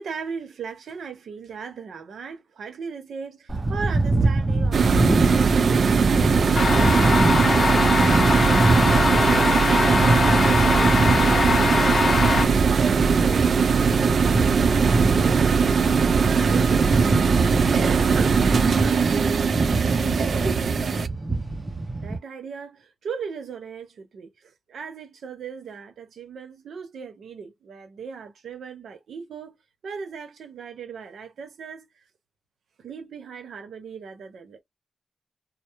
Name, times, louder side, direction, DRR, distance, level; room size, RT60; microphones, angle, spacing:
voice 1, 0.0-5.2 10.3-12.0 12.4-15.7 16.0-17.1 17.7-18.4 18.8-19.1 20.2-21.0 22.0-29.6 29.8-31.9 32.8-34.6, right 5 dB, 80° right, 0.8 m, -37 dB
sound 1, 3.5-22.2, right 2 dB, 30° right, 0.7 m, -25 dB
sound 2, 4.7-21.1, right 6 dB, 60° right, 0.3 m, -21 dB
sound 3, 6.5-12.5, left 4 dB, 50° left, 0.5 m, -22 dB
2.1 x 2.1 x 3.0 m
cardioid pair, 65°, 0 cm